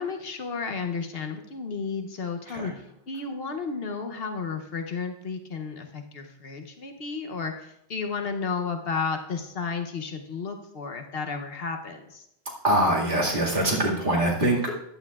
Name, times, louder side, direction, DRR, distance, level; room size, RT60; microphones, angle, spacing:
voice 1, 0.0-2.7 3.1-12.3, left 5 dB, 60° left, 5 dB, 1.0 m, -32 dB
voice 2, 12.6-14.8, right 1 dB, 50° right, -3 dB, 2.2 m, -23 dB
14.5 x 9.8 x 2.4 m, 0.79 s
omnidirectional pair, 1.1 m